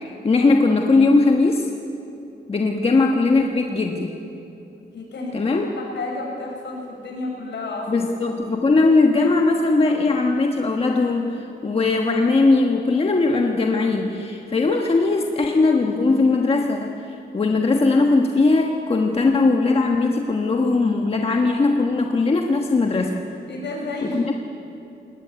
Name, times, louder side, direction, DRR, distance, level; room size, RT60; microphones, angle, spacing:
voice 1, 0.0-1.7 2.5-4.1 5.3-5.7 7.9-23.2 24.0-24.2, left 3 dB, 30° left, 2 dB, 1.3 m, -19 dB
voice 2, 4.9-8.1 23.5-24.3, left 2 dB, 70° left, -1 dB, 7.4 m, -31 dB
21.0 x 19.0 x 9.5 m, 2.8 s
wide cardioid pair, 155°, 19 cm